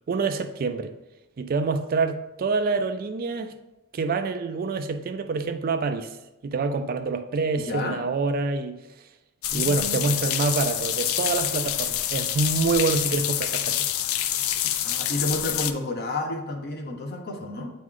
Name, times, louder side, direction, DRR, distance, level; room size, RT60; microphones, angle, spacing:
voice 1, 0.1-0.9 1.4-3.5 3.9-6.2 6.4-8.8 9.5-13.9, right 4 dB, 45° right, 0.4 m, -26 dB
voice 2, 7.5-8.0 9.5-10.2 14.8-17.7, left 2 dB, 50° left, 0.8 m, -31 dB
sound 1, 9.4-15.7, left 11 dB, 85° left, 0.4 m, -27 dB
8.3 x 3.1 x 3.7 m
head